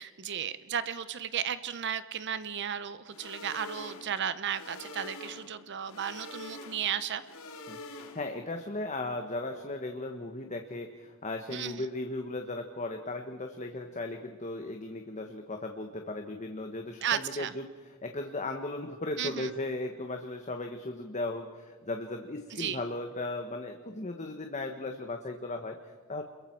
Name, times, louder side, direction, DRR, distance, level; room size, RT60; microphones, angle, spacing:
voice 1, 0.0-7.2 11.5-11.9 17.0-17.5 19.2-19.5 22.5-22.8, right 8 dB, 55° right, 13 dB, 0.7 m, -34 dB
sound 1, 3.1-8.5, left 2 dB, 85° left, 2.4 m, -46 dB
voice 2, 8.1-17.7 18.0-26.2, left 2 dB, 35° left, 4 dB, 1.2 m, -36 dB
28.5 x 22.0 x 4.6 m, 1.5 s
head